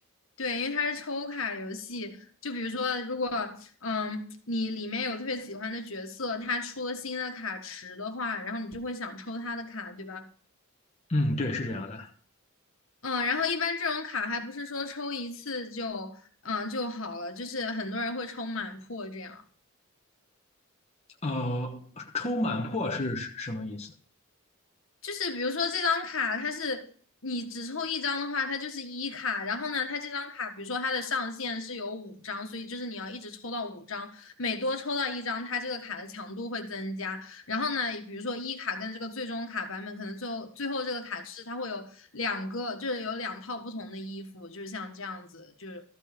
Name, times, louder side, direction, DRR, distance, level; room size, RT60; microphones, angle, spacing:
voice 1, 0.4-10.3 13.0-19.4 25.0-26.9 27.2-45.8, left 3 dB, 70° left, 1.6 m, -33 dB
voice 2, 11.1-12.1 21.2-23.9, left 1 dB, 30° left, 1.1 m, -30 dB
13.5 x 5.5 x 6.7 m
head